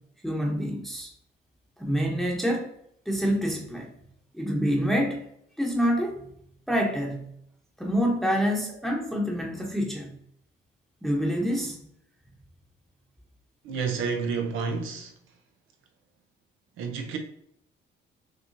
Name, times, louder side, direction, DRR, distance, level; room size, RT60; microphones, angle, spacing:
voice 1, 0.2-1.1 1.8-2.7 3.1-3.9 4.3-5.2 5.6-6.2 6.7-7.3 7.8-10.1 11.0-11.8, equal, ahead, 0.9 m, -26 dB
voice 2, 13.6-15.1 16.8-17.2, right 5 dB, 85° right, 0.8 m, -30 dB
6.1 x 3.1 x 2.7 m
cardioid pair, 90°, 20 cm